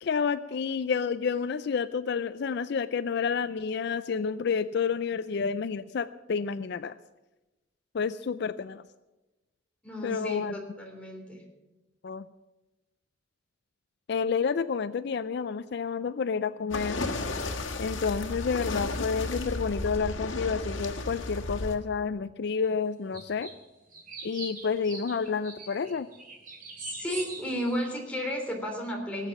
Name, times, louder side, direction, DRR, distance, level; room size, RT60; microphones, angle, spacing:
voice 1, 0.0-6.9 7.9-8.8 10.0-10.5 12.0-12.3 14.1-17.0 17.8-23.5 24.2-26.1, left 5 dB, 60° left, 14 dB, 0.4 m, -29 dB
voice 2, 9.8-11.4 26.9-29.3, equal, 5° left, -1 dB, 3.4 m, -33 dB
sound 1, 16.7-21.8, left 2 dB, 90° left, 1.7 m, -33 dB
sound 2, 23.1-23.5 23.9-27.8, right 3 dB, 45° right, 3.3 m, -42 dB
18.5 x 8.4 x 7.2 m, 1.1 s
head